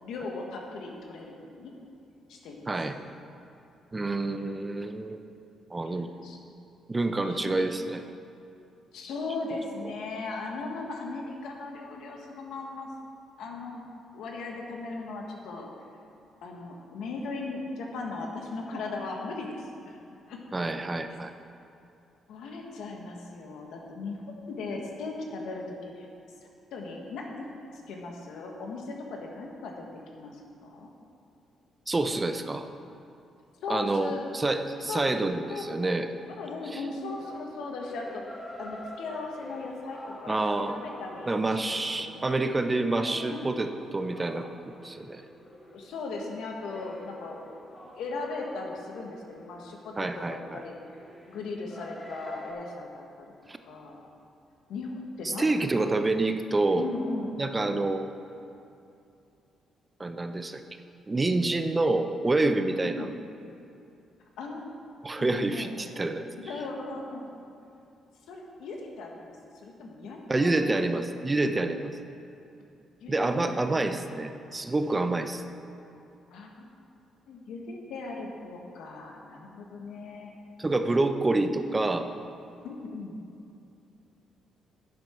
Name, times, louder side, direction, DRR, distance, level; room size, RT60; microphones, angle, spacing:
voice 1, 0.0-1.7 2.3-2.7 6.2-6.4 7.2-7.7 8.9-12.9 13.4-13.8 14.1-15.7 16.4-20.0 20.3-20.4 21.1-21.2 22.3-24.2 24.5-26.1 26.7-27.5 27.9-29.8 30.1-30.9 33.6-34.2 34.9-35.1 35.5-35.7 36.4-42.2 43.1-43.5 45.7-47.4 47.8-50.8 51.3-53.0 53.6-54.1 54.7-55.7 56.7-57.4 62.8-63.1 64.4-64.7 65.2-65.8 66.4-67.5 68.3-70.6 73.0-73.9 76.3-76.7 77.3-80.3 82.6-83.2, left 3 dB, 80° left, 1 dB, 1.4 m, -38 dB
voice 2, 2.7-3.0 3.9-5.2 5.7-6.1 6.9-8.0 20.5-21.3 31.9-32.7 33.7-36.1 36.7-36.8 40.3-40.8 41.2-44.5 44.8-45.2 50.0-50.6 53.5-53.6 55.2-56.9 57.4-58.1 60.0-60.6 61.1-63.1 65.0-66.3 70.3-72.0 73.1-75.4 80.6-82.1, right 2 dB, 20° right, 8 dB, 0.6 m, -27 dB
sound 1, 37.1-52.5, left 1 dB, 15° left, 1.7 m, -47 dB
10.5 x 7.7 x 4.5 m, 2.7 s
cardioid pair, 90°, 0 cm